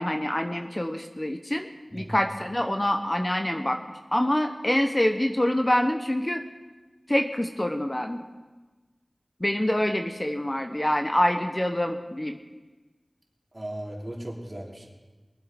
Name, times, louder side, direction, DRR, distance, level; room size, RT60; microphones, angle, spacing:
voice 1, 0.0-3.8 4.1-6.4 7.1-8.2 9.4-12.4, left 1 dB, 25° left, 5 dB, 0.9 m, -26 dB
voice 2, 13.5-14.9, right 1 dB, 40° right, -2 dB, 3.1 m, -36 dB
22.5 x 7.8 x 5.1 m, 1.3 s
wide cardioid pair, 45°, 0 cm